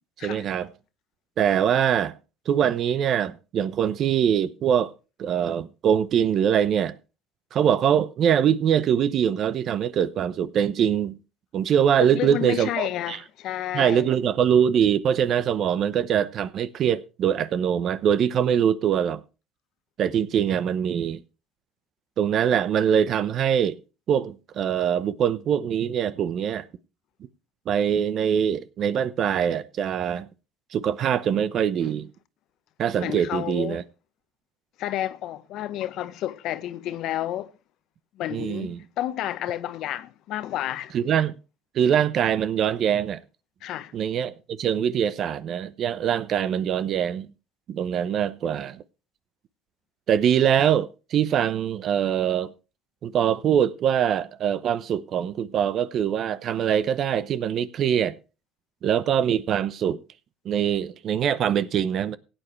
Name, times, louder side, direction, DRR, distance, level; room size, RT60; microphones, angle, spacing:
voice 1, 0.2-0.7 1.4-2.1 2.5-4.9 5.2-7.0 7.5-11.2 11.5-13.2 13.7-19.2 20.0-21.2 22.2-23.8 24.1-26.7 27.7-30.3 30.7-32.1 32.8-33.8 38.3-38.8 40.9-41.4 41.7-43.2 43.9-47.3 47.7-48.8 50.1-52.5 53.0-58.2 58.8-60.0 60.4-62.2, right 9 dB, 55° right, 0.8 m, -23 dB
voice 2, 12.0-14.1 31.8-31.9 33.0-33.8 34.8-37.5 38.2-41.1 43.6-43.9, left 13 dB, 65° left, 0.9 m, -31 dB
16.5 x 9.0 x 3.2 m
supercardioid pair, 85°, 0 cm